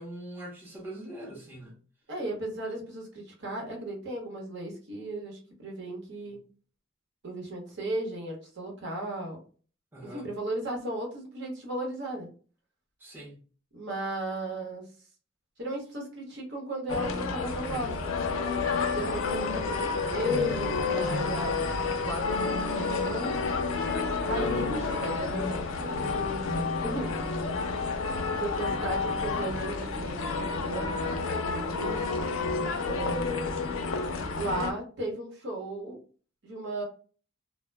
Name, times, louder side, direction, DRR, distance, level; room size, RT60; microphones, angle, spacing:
voice 1, 0.0-1.8 6.3-6.4 9.9-10.3 13.0-13.4 24.4-24.8, equal, 10° right, 0.6 m, -42 dB
voice 2, 2.1-6.4 7.2-9.4 10.0-12.3 13.7-14.8 15.6-18.1 18.9-21.7 22.0-22.2 22.6-23.3 24.3-27.1 28.3-30.9 31.3-32.0 32.8-33.5 34.4-36.0 36.4-36.8, right 1 dB, 60° right, 0.9 m, -35 dB
sound 1, 16.9-34.7, left 4 dB, 80° left, 0.4 m, -30 dB
2.1 x 2.0 x 3.2 m
head